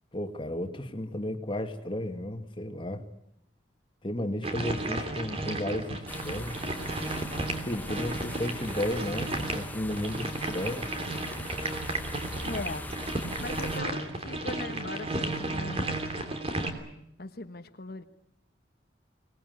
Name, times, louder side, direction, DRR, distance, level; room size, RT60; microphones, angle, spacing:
voice 1, 0.1-3.1 4.0-6.6 7.6-10.9, left 1 dB, 30° left, 2.1 m, -33 dB
sound 1, 4.4-16.7, right 2 dB, 35° right, 3.2 m, -33 dB
sound 2, 6.1-13.8, left 1 dB, 10° left, 1.1 m, -41 dB
voice 2, 7.9-8.2 12.4-12.9 13.4-16.2 17.2-18.0, left 2 dB, 55° left, 1.3 m, -40 dB
25.0 x 19.5 x 9.5 m
head